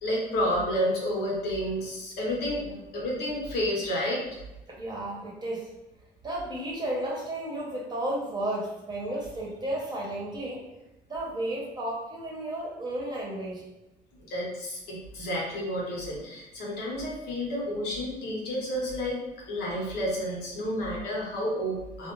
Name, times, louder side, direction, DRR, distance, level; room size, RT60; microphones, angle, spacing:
voice 1, 0.0-2.7 2.9-4.2 14.2-19.2 19.5-22.1, equal, 75° left, -2 dB, 0.9 m, -30 dB
voice 2, 4.7-5.7 6.2-10.7 11.1-13.6, right 1 dB, 25° right, -3 dB, 0.8 m, -33 dB
2.4 x 2.1 x 2.9 m, 0.97 s
cardioid pair, 110°, 17 cm